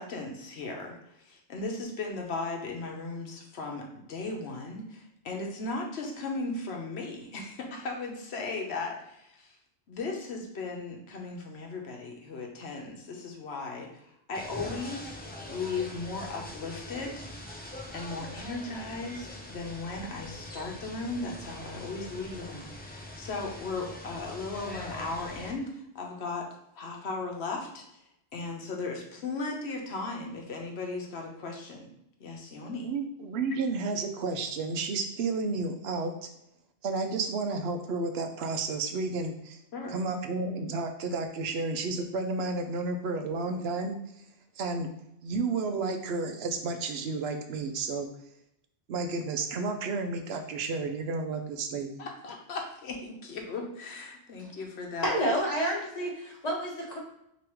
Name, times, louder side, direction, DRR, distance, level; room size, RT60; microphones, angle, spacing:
voice 1, 0.0-9.6 9.9-15.2 15.5-17.2 17.9-26.5 26.8-27.9 28.3-31.9 32.2-32.9 39.7-40.0 52.0-55.2, left 3 dB, 80° left, 1 dB, 1.1 m, -37 dB
sound 1, 14.3-25.5, left 1 dB, 10° left, 0.5 m, -43 dB
voice 2, 32.8-36.3 36.8-39.6 39.9-44.0 44.6-44.9 45.2-48.1 48.9-52.1, right 3 dB, 75° right, 6 dB, 0.8 m, -31 dB
voice 3, 55.0-57.0, equal, 40° left, -3 dB, 1.2 m, -29 dB
4.8 x 2.9 x 3.0 m, 0.80 s
omnidirectional pair, 1.1 m